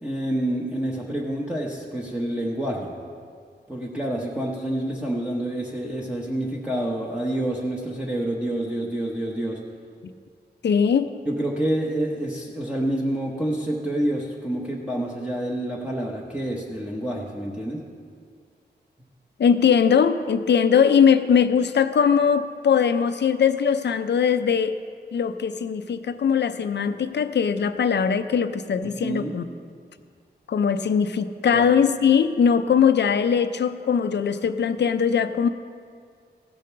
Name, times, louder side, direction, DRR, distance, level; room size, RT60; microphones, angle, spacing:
voice 1, 0.0-2.9 3.7-9.6 11.3-17.8 29.0-29.4 31.5-31.6, right 1 dB, 5° right, -4 dB, 1.0 m, -28 dB
voice 2, 10.6-11.1 19.4-24.7 25.1-29.4 30.5-35.5, left 7 dB, 80° left, 10 dB, 0.5 m, -20 dB
15.5 x 5.2 x 6.7 m, 2.1 s
wide cardioid pair, 125°, 18 cm